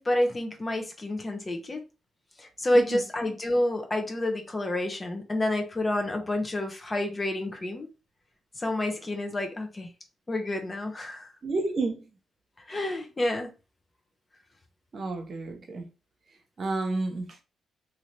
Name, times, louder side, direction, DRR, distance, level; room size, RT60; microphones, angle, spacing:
voice 1, 0.0-1.8 2.4-7.9 8.6-9.9 10.3-11.3 12.7-13.5, left 1 dB, 30° left, 1.0 m, -29 dB
voice 2, 11.4-12.1 14.9-15.9 16.6-17.4, right 3 dB, 55° right, 1.0 m, -30 dB
2.9 x 2.7 x 3.3 m
supercardioid pair, 65°, 0 cm